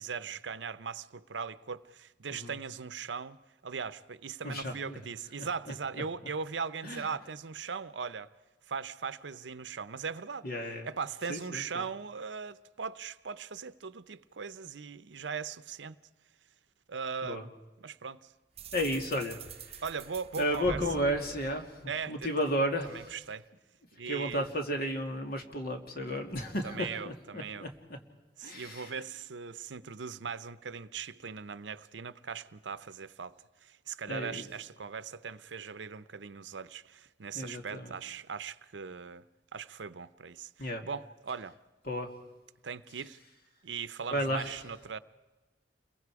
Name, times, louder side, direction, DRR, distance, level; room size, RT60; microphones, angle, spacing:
voice 1, 0.0-3.4 3.6-8.3 8.7-10.5 10.8-16.0 16.9-17.5 17.8-18.3 19.8-21.0 21.9-22.3 22.9-23.5 23.9-24.5 26.6-27.7 28.4-33.4 33.6-39.3 39.5-41.6 42.6-43.2 43.6-45.0, right 6 dB, 85° right, 0.7 m, -39 dB
voice 2, 4.4-5.0 5.4-5.5 5.9-6.0 6.8-7.1 10.4-10.9 11.3-11.8 17.2-17.5 18.7-19.8 20.4-21.8 22.1-23.1 24.1-27.7 28.4-28.9 34.1-34.5 37.3-38.0 40.6-40.8 41.9-42.1 44.1-44.5, equal, 55° left, 2.5 m, -33 dB
sound 1, 18.6-22.4, right 3 dB, 35° right, 0.8 m, -45 dB
29.5 x 22.5 x 4.8 m
head